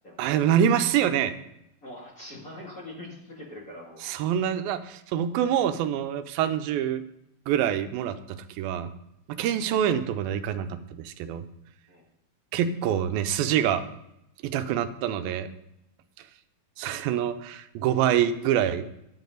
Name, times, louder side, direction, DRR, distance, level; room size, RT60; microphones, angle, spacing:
voice 1, 0.2-1.3 4.0-7.0 7.5-8.2 8.6-8.9 9.4-11.4 12.5-13.8 14.4-15.5 16.8-18.8, right 9 dB, 90° right, 9 dB, 2.5 m, -25 dB
voice 2, 1.8-4.0 11.9-12.0, left 1 dB, 25° left, -4 dB, 2.4 m, -42 dB
10.5 x 9.3 x 3.9 m, 0.81 s
omnidirectional pair, 4.1 m